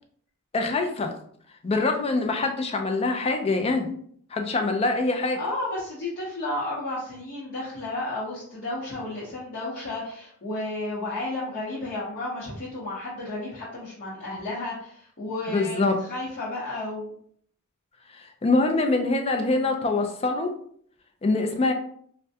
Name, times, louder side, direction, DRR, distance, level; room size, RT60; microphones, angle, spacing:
voice 1, 0.5-1.1 1.6-3.9 4.3-5.4 15.5-16.0 18.1-20.5 21.2-21.7, left 3 dB, 25° left, 4 dB, 0.3 m, -24 dB
voice 2, 5.4-17.1, left 2 dB, 45° left, -10 dB, 0.8 m, -32 dB
3.3 x 2.1 x 2.7 m, 0.62 s
head